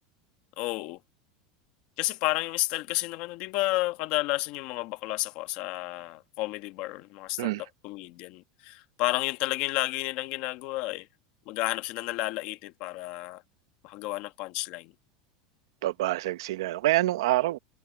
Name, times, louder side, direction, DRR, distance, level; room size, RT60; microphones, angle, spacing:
voice 1, 0.6-1.0 2.0-7.6 7.8-11.1 11.5-13.4 13.8-14.9, left 19 dB, 45° left, 1.2 m, -31 dB
voice 2, 15.8-17.6, right 16 dB, 80° right, 1.0 m, -26 dB
supercardioid pair, 170°, 2 cm